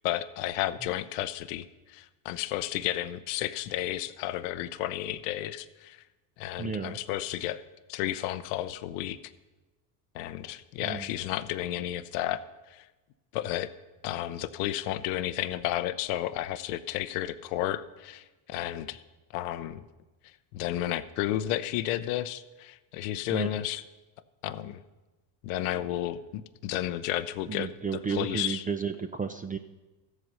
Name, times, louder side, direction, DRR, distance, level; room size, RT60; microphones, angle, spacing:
voice 1, 0.0-6.0 6.4-7.6 7.9-9.2 10.1-12.4 12.7-12.9 13.3-13.7 14.0-19.0 19.3-19.8 20.5-23.8 24.4-24.8 25.4-28.6, left 13 dB, 75° left, 14 dB, 0.7 m, -32 dB
voice 2, 6.6-7.0 10.8-11.1 23.3-23.6 27.5-29.6, right 5 dB, 20° right, 8 dB, 0.5 m, -33 dB
14.0 x 8.1 x 5.6 m, 1.1 s
supercardioid pair, 85°, 46 cm